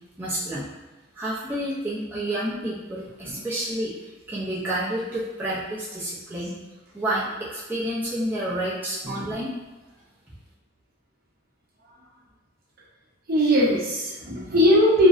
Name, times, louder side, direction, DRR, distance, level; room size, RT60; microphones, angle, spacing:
voice 1, 0.2-0.7 1.2-3.9 4.3-6.5 6.9-9.5, right 1 dB, 10° right, -10 dB, 0.4 m, -29 dB
voice 2, 13.3-15.1, equal, 50° right, -6 dB, 0.7 m, -20 dB
2.5 x 2.0 x 2.4 m, 1.2 s
head